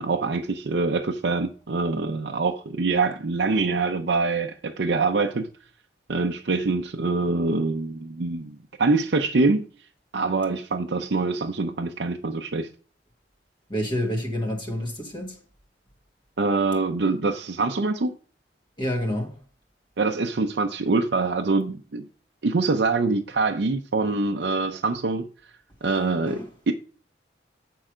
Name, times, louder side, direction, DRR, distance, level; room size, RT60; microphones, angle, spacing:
voice 1, 0.0-5.5 6.1-9.7 10.1-12.7 16.4-18.1 20.0-22.1 22.4-25.3 25.8-26.7, right 3 dB, 70° right, 0.6 m, -24 dB
voice 2, 13.7-15.4 18.8-19.3 26.2-26.5, equal, 25° left, 1.6 m, -28 dB
8.9 x 4.7 x 4.9 m
head